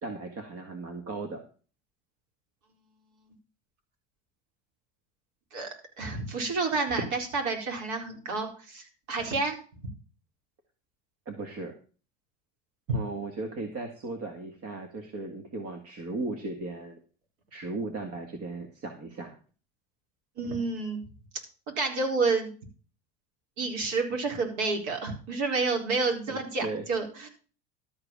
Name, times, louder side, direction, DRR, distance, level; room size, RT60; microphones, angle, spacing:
voice 1, 0.0-1.4 11.3-11.7 12.9-17.0 17.5-19.4 26.3-26.8, right 3 dB, 45° right, 5 dB, 1.9 m, -36 dB
voice 2, 6.0-9.6 12.9-13.0 20.4-21.0 21.8-22.5 23.6-27.3, right 3 dB, 65° right, 2 dB, 4.2 m, -29 dB
12.5 x 5.0 x 7.2 m, 0.37 s
supercardioid pair, 115°, 32 cm